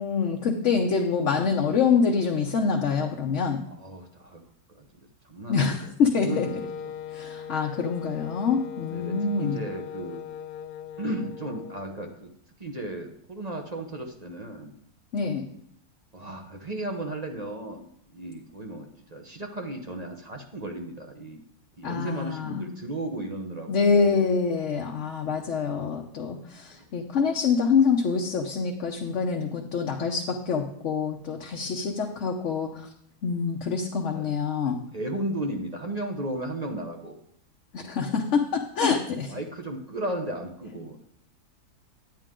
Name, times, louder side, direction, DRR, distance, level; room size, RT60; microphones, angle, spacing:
voice 1, 0.0-3.6 5.5-6.5 7.1-9.6 15.1-15.5 21.8-22.7 23.7-32.9 33.2-34.8 37.7-39.3, left 5 dB, 55° left, 1 dB, 1.1 m, -25 dB
voice 2, 3.8-4.4 4.8-6.9 8.9-10.2 11.0-12.3 12.6-14.7 16.1-21.4 21.8-24.3 26.7-26.8 34.1-34.3 34.6-37.1 39.3-41.0, right 1 dB, 30° right, 3 dB, 0.9 m, -35 dB
Wind instrument woodwind instrument, 6.3-12.0, left 8 dB, 75° left, 1.0 m, -39 dB
10.5 x 9.4 x 3.7 m, 0.71 s
omnidirectional pair, 1.7 m